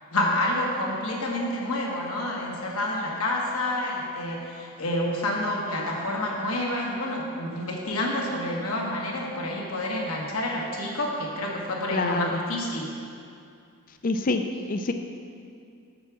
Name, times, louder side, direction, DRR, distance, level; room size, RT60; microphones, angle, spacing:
voice 1, 0.1-12.9, left 1 dB, 75° left, -2 dB, 1.4 m, -28 dB
voice 2, 11.9-12.4 14.0-14.9, left 2 dB, 40° left, 7 dB, 0.4 m, -26 dB
8.6 x 4.7 x 6.1 m, 2.4 s
head